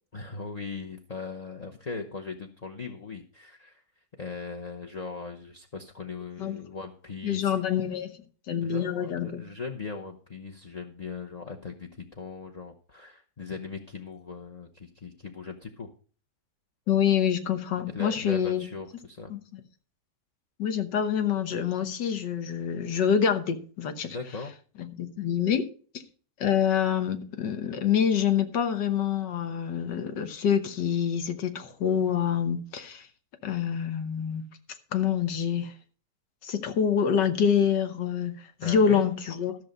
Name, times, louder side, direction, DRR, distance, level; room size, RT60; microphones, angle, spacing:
voice 1, 0.1-3.8 4.2-7.6 8.6-15.9 17.9-19.3 24.1-24.5 38.6-39.1, left 4 dB, 35° left, 0.7 m, -39 dB
voice 2, 7.2-8.2 8.5-9.4 16.9-18.6 19.3-19.6 20.6-24.1 25.0-25.7 26.4-33.1 33.4-34.4 34.9-35.7 36.4-39.5, left 8 dB, 85° left, 1.8 m, -26 dB
13.5 x 6.5 x 5.3 m
omnidirectional pair, 1.8 m